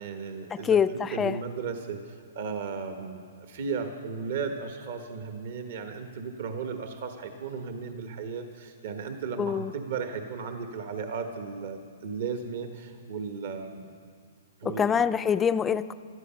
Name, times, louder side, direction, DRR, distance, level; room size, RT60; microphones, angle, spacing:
voice 1, 0.0-13.9 14.6-15.1, right 5 dB, 55° right, 6 dB, 1.2 m, -35 dB
voice 2, 0.5-1.4 9.4-9.7 14.6-15.9, left 7 dB, 15° left, 12 dB, 0.4 m, -25 dB
17.5 x 12.5 x 5.7 m, 2.1 s
hypercardioid pair, 150°, 0 cm